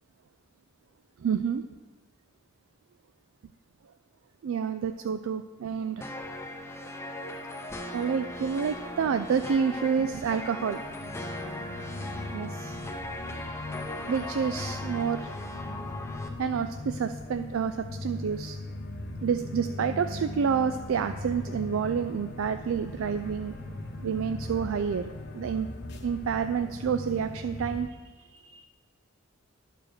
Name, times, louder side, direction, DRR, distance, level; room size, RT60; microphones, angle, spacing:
voice 1, 1.2-1.6 4.4-6.1 7.9-10.8 12.3-12.8 14.0-15.3 15.8-15.9 16.4-18.6 19.2-23.6 24.0-25.7 26.0-28.7, right 6 dB, 75° right, 9 dB, 0.3 m, -29 dB
sound 1, 6.0-16.3, left 1 dB, 15° left, 0.6 m, -39 dB
sound 2, 8.3-27.8, left 2 dB, 55° left, 1.0 m, -40 dB
11.0 x 5.0 x 6.5 m, 1.3 s
head